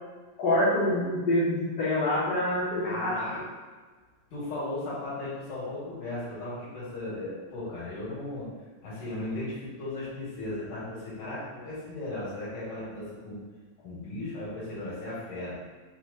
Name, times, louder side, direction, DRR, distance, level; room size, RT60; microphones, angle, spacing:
voice 1, 0.4-3.4, left 1 dB, 50° left, -9 dB, 1.3 m, -26 dB
voice 2, 2.8-3.4 4.3-8.5 8.8-13.4 13.8-15.6, left 2 dB, 75° left, -8 dB, 3.1 m, -36 dB
6.2 x 2.2 x 3.9 m, 1.4 s
omnidirectional pair, 3.6 m